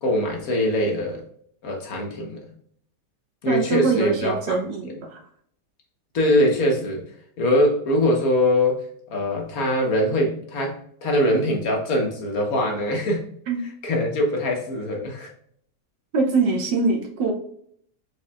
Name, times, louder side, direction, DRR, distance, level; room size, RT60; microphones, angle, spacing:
voice 1, 0.0-1.2 1.6-2.5 3.4-4.6 6.1-7.0 7.4-8.8 9.1-13.2 13.8-15.3, left 1 dB, 60° left, 1 dB, 1.5 m, -22 dB
voice 2, 3.5-5.2 13.5-13.6 16.1-17.3, right 4 dB, 90° right, 1 dB, 1.7 m, -23 dB
4.8 x 4.1 x 2.3 m, 0.64 s
omnidirectional pair, 1.8 m